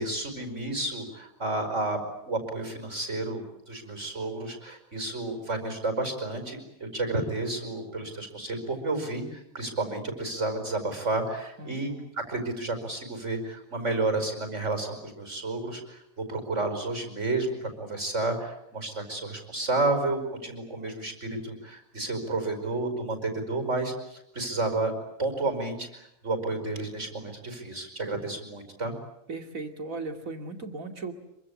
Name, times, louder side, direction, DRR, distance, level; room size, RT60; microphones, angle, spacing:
voice 1, 0.0-2.0 2.3-12.0 12.3-24.9 25.2-28.9, right 2 dB, 60° right, 6 dB, 5.6 m, -31 dB
voice 2, 11.6-12.1 29.3-31.1, right 3 dB, 80° right, 5 dB, 3.0 m, -37 dB
26.5 x 24.5 x 8.5 m, 0.80 s
omnidirectional pair, 1.4 m